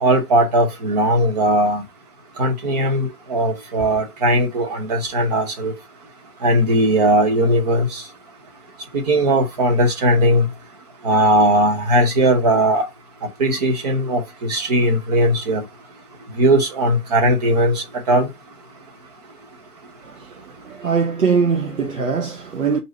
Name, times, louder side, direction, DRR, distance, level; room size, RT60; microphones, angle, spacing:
voice 1, 0.0-1.8 2.4-5.7 6.4-8.0 8.9-10.5 11.0-12.9 13.4-15.6 16.4-18.3, right 1 dB, 25° right, 0.9 m, -18 dB
voice 2, 20.0-22.8, right 5 dB, 60° right, 0.8 m, -22 dB
4.7 x 2.8 x 4.0 m
figure-of-eight pair, 140°, 45 cm